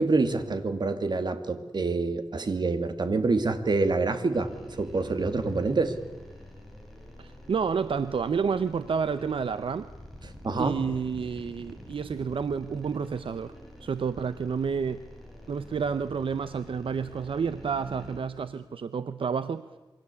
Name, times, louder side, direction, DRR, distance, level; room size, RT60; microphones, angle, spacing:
voice 1, 0.0-6.0 10.4-10.7, right 3 dB, 55° right, 9 dB, 2.5 m, -26 dB
sound 1, 4.3-18.2, equal, ahead, 7.3 m, -47 dB
voice 2, 7.2-9.9 10.6-13.5 13.8-15.0 15.5-19.7, right 6 dB, 75° right, 13 dB, 0.8 m, -30 dB
27.5 x 23.5 x 8.5 m, 1.1 s
wide cardioid pair, 110°, 9 cm